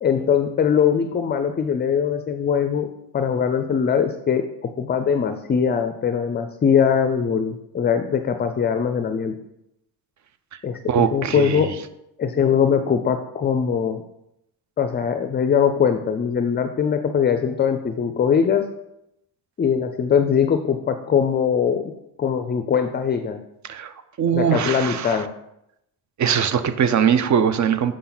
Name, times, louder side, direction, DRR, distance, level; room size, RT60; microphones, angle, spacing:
voice 1, 0.0-2.9 3.1-4.4 4.8-9.3 10.6-11.7 12.2-14.0 14.8-18.6 19.6-21.8 22.2-23.4 24.3-25.3, left 7 dB, 25° left, 7 dB, 0.4 m, -21 dB
voice 2, 10.9-11.7 23.7-25.2 26.2-28.0, right 7 dB, 50° right, 11 dB, 0.6 m, -21 dB
6.4 x 5.8 x 3.9 m, 0.84 s
cardioid pair, 115°, 38 cm